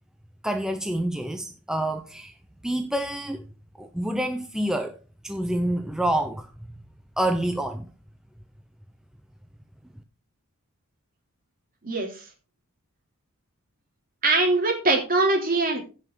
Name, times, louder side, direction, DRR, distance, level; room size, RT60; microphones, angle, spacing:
voice 1, 0.4-2.3 2.6-3.4 3.8-5.0 5.2-6.5 7.2-7.9, right 1 dB, 5° right, 0.6 m, -27 dB
voice 2, 11.8-12.2 14.2-15.8, right 2 dB, 40° right, 2.8 m, -22 dB
16.0 x 5.7 x 3.7 m
head